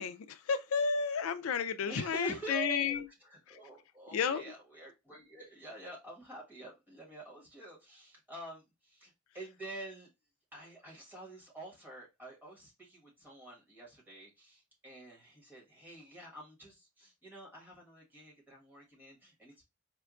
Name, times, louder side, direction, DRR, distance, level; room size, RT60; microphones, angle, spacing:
voice 1, 0.0-3.0 4.1-4.4, left 6 dB, 80° left, 0.4 m, -32 dB
voice 2, 1.8-10.1 10.5-19.6, right 2 dB, 10° right, 1.3 m, -47 dB
4.4 x 2.3 x 2.3 m
head